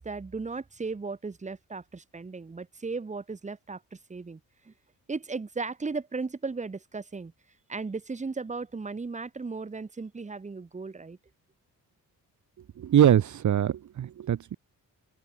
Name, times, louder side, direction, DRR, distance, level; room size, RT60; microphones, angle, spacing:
voice 1, 0.0-4.4 4.7-4.8 5.1-7.3 7.7-11.2, right 4 dB, 20° right, 2.7 m, -36 dB
voice 2, 12.8-14.5, right 10 dB, 55° right, 1.6 m, -23 dB
open air
wide cardioid pair, 165°, 35 cm